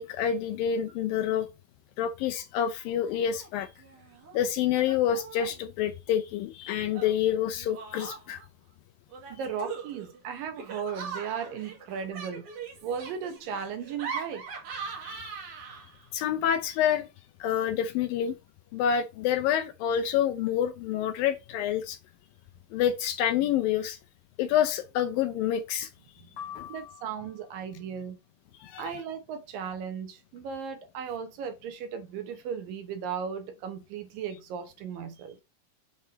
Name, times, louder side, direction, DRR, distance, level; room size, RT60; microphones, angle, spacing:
voice 1, 0.0-1.5 2.0-3.7 4.3-8.4 15.0-15.4 16.1-17.1 17.4-18.4 18.7-22.0 22.7-24.0 24.4-25.9 26.6-26.7 28.6-28.9, left 9 dB, 75° left, 2.2 m, -27 dB
Laughter, 3.1-3.5 3.8-4.4 4.8-5.6 6.9-8.4 9.1-16.1, right 5 dB, 55° right, 3.3 m, -41 dB
voice 2, 9.3-12.5 12.8-14.4 26.2-26.3 26.7-28.2 28.8-35.4, right 7 dB, 70° right, 2.4 m, -36 dB
sound 1, 26.4-27.6, left 9 dB, 60° left, 1.7 m, -44 dB
8.1 x 3.7 x 4.0 m
omnidirectional pair, 4.5 m